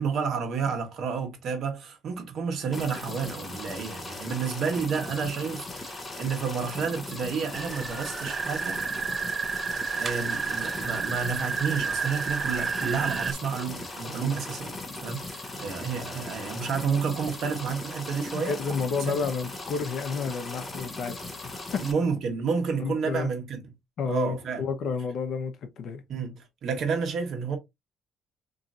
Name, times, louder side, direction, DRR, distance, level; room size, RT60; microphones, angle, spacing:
voice 1, 0.0-8.8 9.9-14.7 15.0-18.8 19.1-19.2 21.8-23.6 24.1-24.7 26.1-27.6, right 5 dB, 50° right, 1.2 m, -30 dB
sound 1, 2.7-21.9, left 2 dB, 20° left, 0.8 m, -39 dB
sound 2, 7.5-13.3, right 5 dB, 25° right, 0.4 m, -31 dB
voice 2, 18.3-21.8 22.8-23.3 24.0-26.0, left 5 dB, 55° left, 0.8 m, -31 dB
4.1 x 3.0 x 2.5 m
cardioid pair, 155°, 0 cm